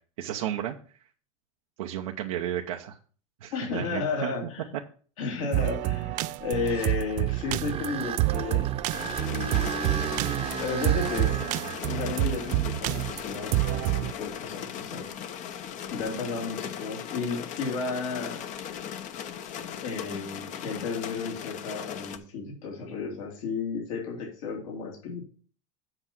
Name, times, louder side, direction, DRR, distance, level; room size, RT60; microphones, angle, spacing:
voice 1, 0.2-0.8 1.8-3.0 3.4-4.3 5.4-5.5, right 11 dB, 80° right, 1 dB, 0.8 m, -33 dB
voice 2, 3.5-4.7 5.2-8.7 9.2-10.1 10.6-11.3 11.8-15.0 15.9-18.4 19.8-25.3, left 4 dB, 75° left, -1 dB, 2.9 m, -33 dB
sound 1, 5.5-14.1, right 18 dB, 50° right, 0.4 m, -27 dB
sound 2, 6.4-14.4 15.0-15.1 15.9-16.0 19.5-19.9, right 8 dB, 35° right, 0.9 m, -37 dB
sound 3, 8.9-22.2, left 9 dB, 45° left, 0.9 m, -38 dB
7.9 x 5.4 x 6.0 m, 0.43 s
hypercardioid pair, 100°, 17 cm